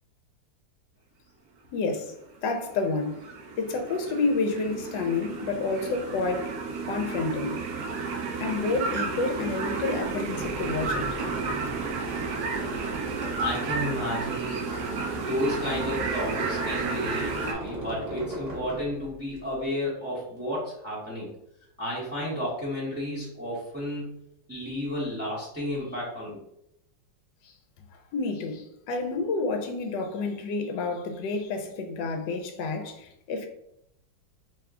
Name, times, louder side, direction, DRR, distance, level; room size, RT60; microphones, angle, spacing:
voice 1, 1.7-2.1 2.4-3.2 3.6-6.5 6.8-7.6 8.4-11.1 28.1-33.5, left 3 dB, 75° left, 1.2 m, -29 dB
sound 1, 2.5-17.5, right 4 dB, 70° right, 1.0 m, -32 dB
Squeak, 10.3-19.6, right 1 dB, 45° right, 1.3 m, -39 dB
voice 2, 13.4-14.6 15.3-21.3 21.8-24.1 24.5-26.4, equal, 10° right, 0.8 m, -32 dB
3.5 x 2.3 x 3.5 m
omnidirectional pair, 2.1 m